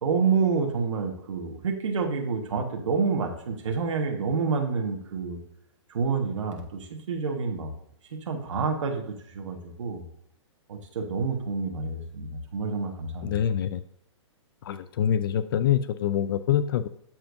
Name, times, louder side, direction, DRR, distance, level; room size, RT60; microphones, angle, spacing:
voice 1, 0.0-5.4 5.9-7.7 8.3-10.0 10.7-13.4, right 5 dB, 75° right, 2 dB, 1.5 m, -28 dB
voice 2, 13.2-13.8 14.6-16.9, left 9 dB, 45° left, 13 dB, 0.4 m, -25 dB
13.0 x 4.4 x 2.7 m, 0.70 s
hypercardioid pair, 155°, 16 cm